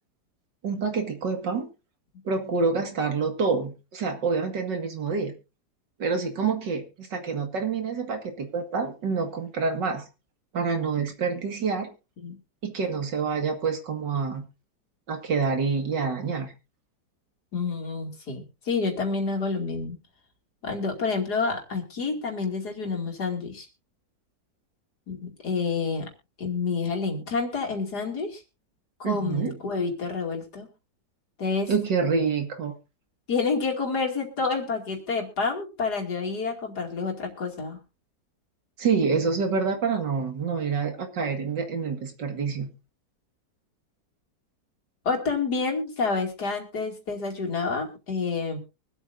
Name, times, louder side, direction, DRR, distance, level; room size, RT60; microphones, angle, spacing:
voice 1, 0.6-1.7 2.2-5.3 6.0-10.0 10.5-11.9 12.6-14.4 15.1-16.5 29.0-29.6 31.7-32.8 38.8-42.7, right 5 dB, 75° right, 5 dB, 2.6 m, -27 dB
voice 2, 17.5-20.0 20.6-23.7 25.1-26.1 26.4-28.4 29.0-30.7 31.4-31.7 33.3-37.8 45.0-48.6, left 4 dB, 60° left, 1 dB, 3.1 m, -28 dB
24.0 x 8.2 x 2.6 m, 0.29 s
omnidirectional pair, 1.9 m